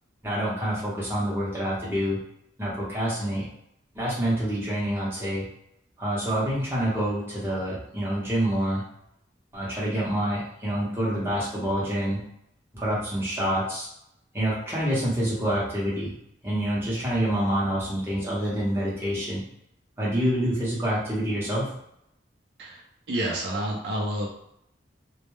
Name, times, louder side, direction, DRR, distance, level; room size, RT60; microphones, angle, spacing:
voice 1, 0.2-2.2 2.6-3.5 3.9-5.5 6.0-8.8 9.5-12.2 12.7-13.9 14.3-16.1 16.4-19.4 20.0-21.7, equal, 10° right, -8 dB, 0.7 m, -27 dB
voice 2, 23.1-24.3, right 1 dB, 60° right, -2 dB, 0.5 m, -29 dB
2.2 x 2.1 x 3.0 m, 0.76 s
head